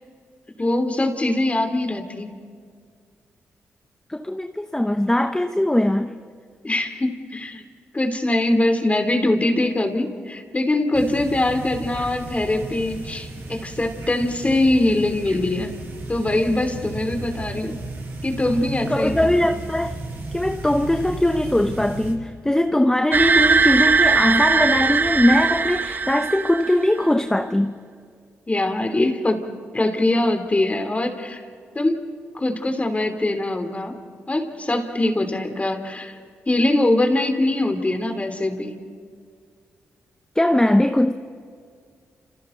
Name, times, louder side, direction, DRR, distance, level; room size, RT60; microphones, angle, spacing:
voice 1, 0.6-2.3 6.6-7.6 7.9-15.7 16.1-17.7 18.2-19.5 28.5-29.5 29.7-31.4 31.7-32.0 32.3-33.9 34.3-36.2 36.5-38.8, left 1 dB, 25° left, 3.2 m, -22 dB
voice 2, 4.1-6.1 18.9-19.9 20.3-27.8 40.3-41.1, left 1 dB, 10° left, 1.0 m, -20 dB
sound 1, 10.9-22.1, right 2 dB, 55° right, 7.4 m, -34 dB
sound 2, 23.1-26.9, right 4 dB, 35° right, 0.5 m, -19 dB
30.0 x 28.0 x 4.0 m
supercardioid pair, 55°, 5 cm